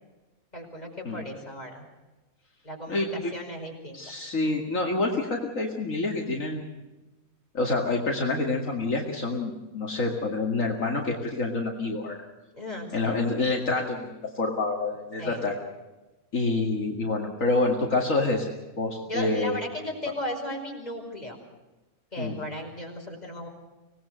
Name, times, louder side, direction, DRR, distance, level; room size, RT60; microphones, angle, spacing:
voice 1, 0.5-1.8 2.6-4.0 12.5-13.2 15.2-15.4 18.9-21.4 22.1-23.5, left 1 dB, 30° left, 1 dB, 5.3 m, -36 dB
voice 2, 2.9-3.3 3.9-6.6 7.5-12.1 12.9-15.6 16.3-19.6 22.2-22.3, left 3 dB, 70° left, 0 dB, 2.6 m, -27 dB
25.5 x 19.0 x 6.4 m, 1.1 s
omnidirectional pair, 1.5 m